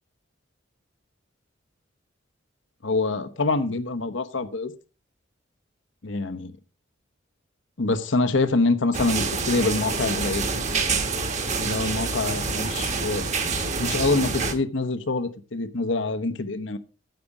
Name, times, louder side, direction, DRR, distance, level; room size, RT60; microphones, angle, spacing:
voice 1, 2.8-4.7 6.0-6.5 7.8-10.5 11.6-13.2 13.8-16.8, left 3 dB, 70° left, 10 dB, 1.0 m, -25 dB
sound 1, 8.9-14.5, right 4 dB, 35° right, 1.4 m, -27 dB
9.4 x 8.6 x 4.8 m, 0.34 s
head